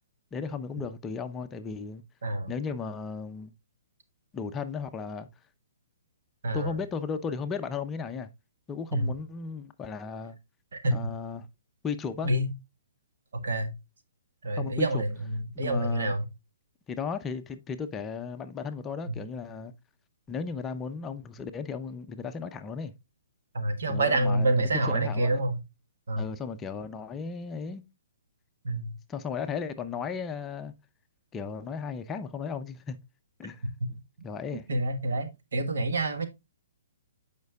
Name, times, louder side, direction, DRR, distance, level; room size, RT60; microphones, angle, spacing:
voice 1, 0.3-2.0 2.5-3.5 4.3-5.3 6.5-8.3 8.7-10.4 10.9-11.5 11.8-12.3 14.6-15.0 15.6-16.1 16.9-19.7 20.3-22.9 23.9-25.4 26.2-27.8 29.1-30.7 31.3-33.0 33.4-33.6 34.2-34.7, left 5 dB, 15° left, 0.5 m, -35 dB
voice 2, 13.3-13.7 14.4-16.2 19.1-19.2 23.5-25.6 26.1-26.2 28.6-28.9 33.8-33.9 34.7-36.3, right 1 dB, 75° right, 1.4 m, -27 dB
9.3 x 5.1 x 2.3 m
hypercardioid pair, 145°, 0 cm